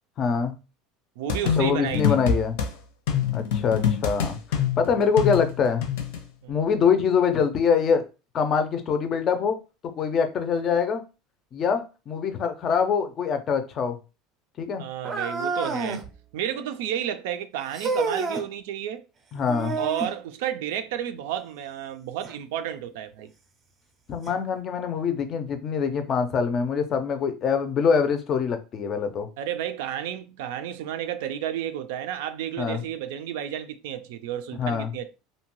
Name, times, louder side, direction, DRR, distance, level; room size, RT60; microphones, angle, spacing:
voice 1, 0.2-0.5 1.6-2.6 3.3-5.9 6.5-8.0 8.3-9.6 10.0-11.0 11.5-14.0 14.6-14.9 19.3-19.8 24.1-29.3 32.6-32.8 34.6-34.9, left 6 dB, 35° left, 0.4 m, -24 dB
voice 2, 1.2-2.2 6.4-6.6 14.8-16.0 16.3-19.0 19.8-23.3 29.4-35.1, right 10 dB, 80° right, 0.4 m, -32 dB
sound 1, 1.3-2.7 3.1-6.2, left 8 dB, 80° left, 0.6 m, -25 dB
sound 2, 15.0-16.1 17.7-18.5 19.5-20.2 22.2-22.3 23.2-23.3 24.3-24.4, right 3 dB, 25° right, 0.5 m, -29 dB
2.7 x 2.2 x 3.0 m
supercardioid pair, 150°, 0 cm